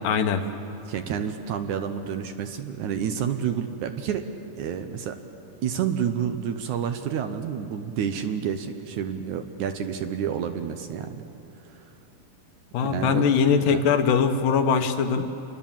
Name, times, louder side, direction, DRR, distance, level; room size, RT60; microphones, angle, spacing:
voice 1, 0.0-0.4 12.7-15.3, left 6 dB, 75° left, 7 dB, 2.6 m, -21 dB
voice 2, 0.9-4.2 4.6-5.2 5.6-11.3 11.6-11.8 12.8-13.8, right 8 dB, 70° right, 7 dB, 2.0 m, -29 dB
28.5 x 21.5 x 7.4 m, 3.0 s
omnidirectional pair, 4.0 m